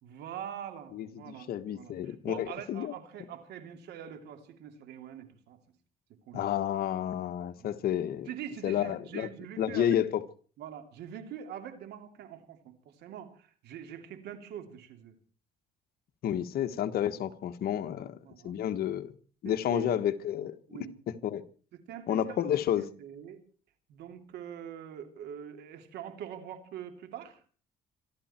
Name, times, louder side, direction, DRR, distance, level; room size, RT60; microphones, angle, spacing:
voice 1, 0.0-5.6 6.3-6.5 7.6-7.8 8.3-10.0 10.6-15.2 17.7-18.5 19.4-20.0 20.7-20.9 21.7-23.4 23.9-27.4, right 9 dB, 75° right, 3.0 m, -44 dB
voice 2, 0.9-2.9 6.3-8.3 8.6-9.3 9.6-10.2 16.2-18.2 18.4-19.1 19.4-20.8 21.2-21.4 22.1-22.8, left 10 dB, 65° left, 1.5 m, -30 dB
26.0 x 12.5 x 4.5 m
cardioid pair, 110°, 17 cm